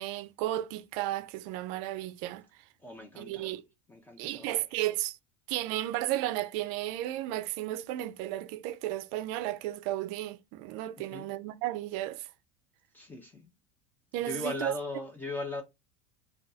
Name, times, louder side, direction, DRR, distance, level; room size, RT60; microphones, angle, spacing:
voice 1, 0.0-2.4 3.2-3.6 4.2-5.2 5.5-12.3 14.1-14.7, right 14 dB, 55° right, 0.4 m, -33 dB
voice 2, 2.8-3.5 3.9-4.6 11.0-11.3 12.9-13.5 14.2-15.6, left 2 dB, 10° left, 0.4 m, -39 dB
3.5 x 2.2 x 2.7 m
supercardioid pair, 145°, 16 cm